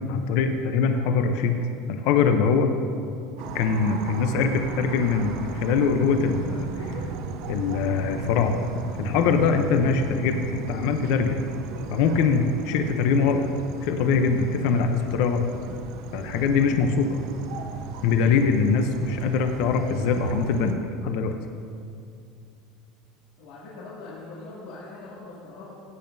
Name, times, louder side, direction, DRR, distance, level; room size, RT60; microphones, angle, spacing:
voice 1, 0.1-1.6 1.9-2.8 3.5-7.1 7.5-8.5 9.0-11.4 11.9-13.4 13.8-15.4 16.1-17.2 18.0-20.7 21.0-21.3, left 5 dB, 55° left, 6 dB, 0.6 m, -23 dB
sound 1, 3.4-20.7, right 5 dB, 55° right, 0.6 m, -36 dB
voice 2, 23.4-25.8, left 3 dB, 75° left, -9 dB, 2.3 m, -41 dB
16.0 x 8.7 x 2.7 m, 2.4 s
cardioid pair, 180°, 0 cm